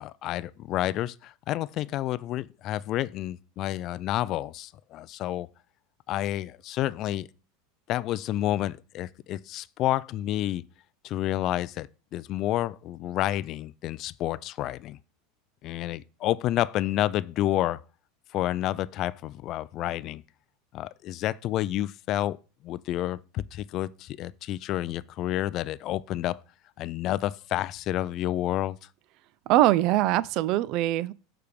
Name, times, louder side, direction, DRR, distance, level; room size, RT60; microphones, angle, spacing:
voice 1, 0.0-5.5 6.1-7.3 7.9-10.6 11.0-11.9 12.1-15.0 15.6-17.8 18.3-20.2 20.7-22.4 22.6-26.4 26.8-28.8, left 14 dB, 50° left, 0.3 m, -29 dB
voice 2, 29.5-31.1, right 15 dB, 55° right, 0.3 m, -22 dB
6.8 x 3.4 x 5.1 m
supercardioid pair, 110°, 0 cm